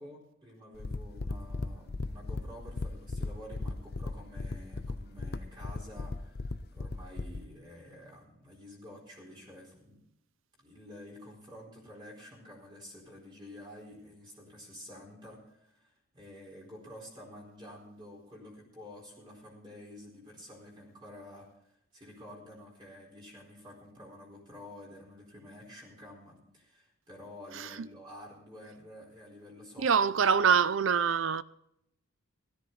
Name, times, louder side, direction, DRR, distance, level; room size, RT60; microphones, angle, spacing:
voice 1, 0.0-6.4 6.7-10.0 10.6-29.9 30.4-30.5, left 1 dB, 20° right, 4.2 m, -50 dB
sound 1, 0.8-7.4, left 3 dB, 45° left, 0.6 m, -37 dB
voice 2, 27.5-27.9 29.8-31.4, right 6 dB, 65° right, 0.5 m, -25 dB
16.5 x 13.5 x 3.9 m
head